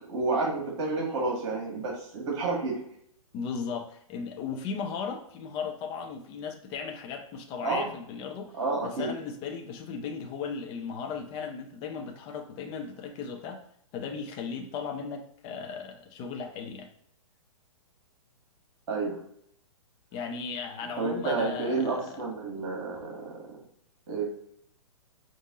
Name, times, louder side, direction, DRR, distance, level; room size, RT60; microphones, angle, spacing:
voice 1, 0.1-2.8 7.6-7.9 8.6-9.1 18.9-19.2 21.0-23.4 24.1-24.3, right 3 dB, 50° right, -3 dB, 1.7 m, -30 dB
voice 2, 3.3-8.5 8.8-13.6 13.9-16.9 20.1-22.2, left 5 dB, 30° left, 5 dB, 0.6 m, -36 dB
5.2 x 2.6 x 3.6 m, 0.69 s
figure-of-eight pair, 120°, 18 cm